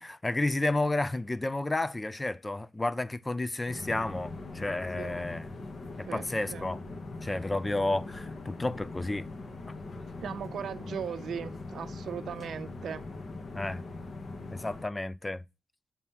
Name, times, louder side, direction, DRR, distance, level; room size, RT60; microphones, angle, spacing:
voice 1, 0.0-5.4 6.0-6.8 7.2-9.3 13.5-13.8 14.5-15.4, left 2 dB, 15° left, 0.3 m, -31 dB
sound 1, 3.7-14.9, left 3 dB, 40° left, 0.9 m, -41 dB
voice 2, 5.0-5.3 6.1-6.7 10.2-13.1, right 8 dB, 70° right, 0.5 m, -38 dB
7.0 x 2.9 x 5.4 m
wide cardioid pair, 130°, 0 cm